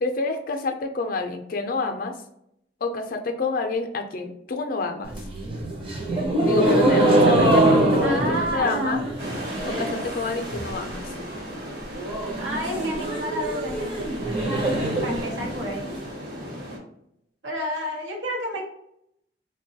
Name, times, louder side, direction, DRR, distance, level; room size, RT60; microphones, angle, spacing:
voice 1, 0.0-2.2 2.8-5.1 6.4-9.0 9.7-11.1 15.5-16.1, left 3 dB, 50° left, 5 dB, 0.4 m, -28 dB
sound 1, 5.0-10.1 10.4-10.9 11.2-11.3 11.5-11.6 11.9-15.9, right 1 dB, 30° right, 0.7 m, -23 dB
voice 2, 8.0-9.0 12.4-14.3 14.5-15.9 17.4-18.6, equal, 85° right, -1 dB, 0.8 m, -30 dB
sound 2, 9.2-16.8, equal, 50° right, 1.1 m, -36 dB
3.7 x 2.2 x 2.7 m, 0.76 s
head